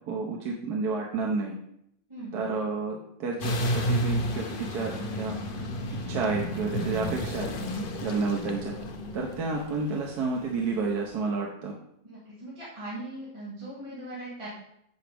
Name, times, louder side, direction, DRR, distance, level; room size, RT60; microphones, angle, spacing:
voice 1, 0.1-1.6 2.3-5.6 6.1-7.5 8.0-8.8 9.1-11.7, right 4 dB, 70° right, -1 dB, 1.4 m, -30 dB
voice 2, 2.1-2.4 12.0-14.5, right 1 dB, 15° right, -10 dB, 2.3 m, -40 dB
sound 1, 3.4-10.8, equal, 55° left, 0.6 m, -31 dB
9.3 x 4.9 x 3.4 m, 0.74 s
omnidirectional pair, 1.9 m